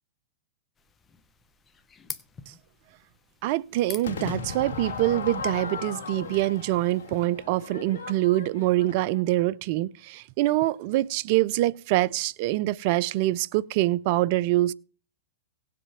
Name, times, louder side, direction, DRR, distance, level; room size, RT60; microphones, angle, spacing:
sound 1, 0.8-7.3, left 5 dB, 20° left, 0.9 m, -47 dB
voice 1, 3.4-14.7, right 16 dB, 50° right, 0.4 m, -25 dB
Crowd / Fireworks, 4.0-9.3, left 5 dB, 70° left, 1.7 m, -36 dB
17.5 x 7.6 x 3.5 m
hypercardioid pair, 115°, 0 cm